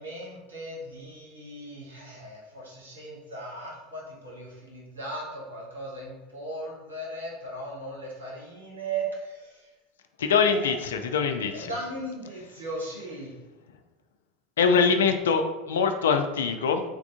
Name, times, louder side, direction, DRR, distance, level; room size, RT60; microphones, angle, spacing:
voice 1, 0.0-9.6 10.5-10.8 11.5-13.3, right 2 dB, 80° right, -5 dB, 1.1 m, -37 dB
voice 2, 10.2-11.7 14.6-16.8, left 5 dB, 70° left, 7 dB, 0.3 m, -23 dB
3.3 x 2.4 x 3.5 m, 1.1 s
figure-of-eight pair, 75°, 0 cm